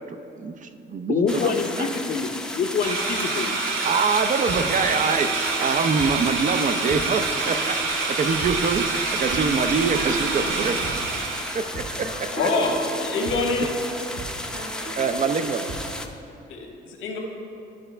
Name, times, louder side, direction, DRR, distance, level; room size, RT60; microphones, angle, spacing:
voice 1, 0.1-1.5 1.8-1.9 3.8-5.3 5.6-10.8 11.5-12.3 15.0-15.7, right 5 dB, 40° right, 9 dB, 0.5 m, -25 dB
voice 2, 1.1-3.6, left 5 dB, 45° left, 6 dB, 0.6 m, -25 dB
sound 1, 1.3-16.1, left 1 dB, 5° left, 0.6 m, -34 dB
sound 2, 2.8-11.6, right 4 dB, 80° right, 0.9 m, -27 dB
sound 3, 4.5-15.9, right 2 dB, 60° right, 1.6 m, -38 dB
voice 3, 12.3-13.7 16.5-17.2, left 3 dB, 90° left, 0 dB, 1.4 m, -25 dB
13.0 x 4.9 x 3.3 m, 2.7 s
cardioid pair, 90°, 20 cm